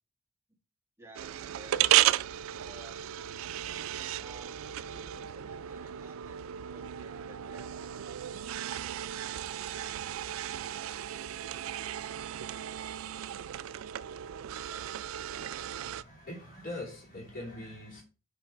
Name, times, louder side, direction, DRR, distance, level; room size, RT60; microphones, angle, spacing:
voice 1, 1.0-1.9 2.6-3.0 3.7-7.9, right 2 dB, 15° right, 1.5 m, -54 dB
sound 1, 1.1-16.0, right 12 dB, 75° right, 0.3 m, -34 dB
voice 2, 15.7-18.0, left 1 dB, 50° left, 2.7 m, -42 dB
7.4 x 3.8 x 4.5 m
head